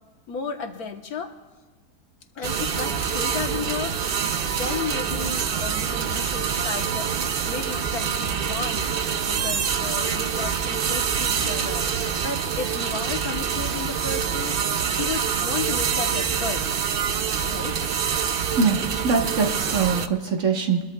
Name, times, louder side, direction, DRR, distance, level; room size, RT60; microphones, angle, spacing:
voice 1, 0.3-1.3 2.3-4.0 4.5-7.1 7.4-16.6 17.4-17.8, left 5 dB, 70° left, 5 dB, 1.6 m, -33 dB
sound 1, 2.4-20.1, right 7 dB, 70° right, 0.5 m, -26 dB
sound 2, 2.7-16.7, right 2 dB, 35° right, 1.2 m, -39 dB
voice 2, 19.0-20.8, right 5 dB, 55° right, 2 dB, 1.6 m, -22 dB
29.0 x 21.0 x 2.3 m, 1.3 s
omnidirectional pair, 1.7 m